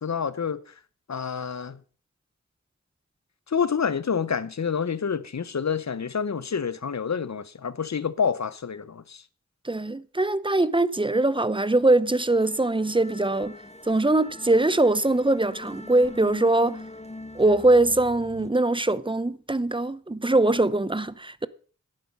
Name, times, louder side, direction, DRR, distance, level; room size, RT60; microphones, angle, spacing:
voice 1, 0.0-0.6 1.1-1.8 3.5-9.2, left 6 dB, 70° left, 0.8 m, -28 dB
voice 2, 9.6-13.5 13.9-16.8 17.3-21.5, right 2 dB, 15° right, 0.7 m, -22 dB
sound 1, 12.0-18.5, left 2 dB, 20° left, 1.2 m, -43 dB
11.0 x 10.5 x 5.4 m
wide cardioid pair, 65°, 29 cm